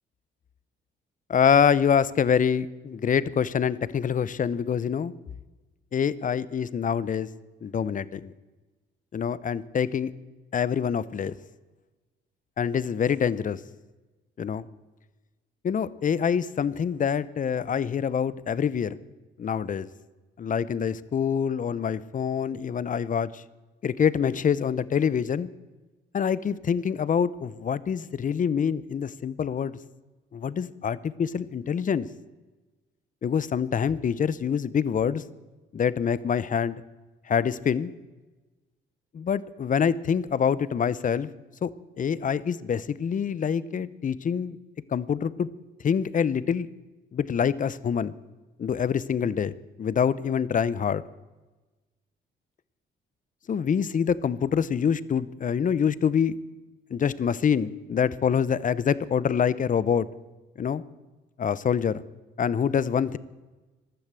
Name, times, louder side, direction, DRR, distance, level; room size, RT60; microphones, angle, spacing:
voice 1, 1.3-5.1 5.9-7.3 7.6-8.3 9.1-10.1 10.5-11.3 12.6-13.6 14.4-14.6 15.6-19.0 19.4-19.9 20.4-23.4 23.8-25.5 26.1-29.8 30.3-32.1 33.2-35.2 35.7-36.8 37.3-37.9 39.1-41.3 41.6-41.7 42.0-44.6 44.9-45.5 45.8-46.7 47.1-48.1 48.6-51.0 53.5-56.3 56.9-60.1 60.6-60.8 61.4-62.0 62.4-63.2, left 7 dB, 40° left, 18 dB, 0.8 m, -25 dB
15.0 x 12.5 x 7.6 m, 1.2 s
cardioid pair, 90°, 20 cm